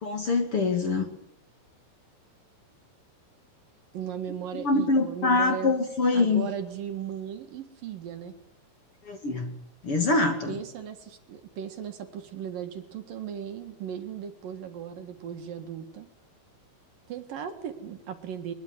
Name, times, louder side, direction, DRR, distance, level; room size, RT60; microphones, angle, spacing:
voice 1, 0.0-1.1 4.5-6.5 9.1-9.5 9.8-10.5, left 3 dB, 40° left, 5 dB, 2.7 m, -24 dB
voice 2, 3.9-5.7 6.1-8.3 10.5-16.1 17.1-18.5, right 8 dB, 65° right, 7 dB, 3.3 m, -37 dB
22.5 x 22.5 x 9.4 m, 0.75 s
omnidirectional pair, 4.6 m